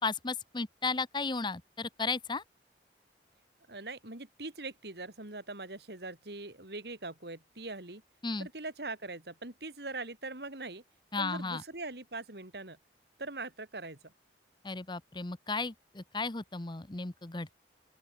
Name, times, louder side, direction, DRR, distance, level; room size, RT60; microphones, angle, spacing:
voice 1, 0.0-2.4 8.2-8.5 11.1-11.6 14.6-17.6, left 4 dB, 25° left, 0.9 m, -34 dB
voice 2, 3.7-8.0 8.4-10.8 11.2-12.8 13.2-14.1, right 2 dB, 60° right, 3.0 m, -42 dB
open air
head